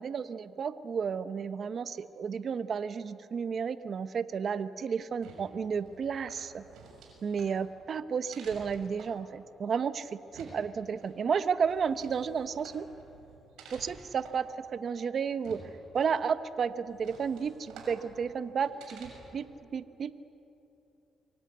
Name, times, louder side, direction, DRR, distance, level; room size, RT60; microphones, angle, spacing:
voice 1, 0.0-6.6 7.2-10.1 10.3-12.8 13.7-15.6 15.9-19.5 19.7-20.2, right 6 dB, 50° right, 12 dB, 0.9 m, -32 dB
sound 1, 5.0-19.5, right 4 dB, 85° right, 6.8 m, -52 dB
25.0 x 23.5 x 9.4 m, 3.0 s
cardioid pair, 90°, 0 cm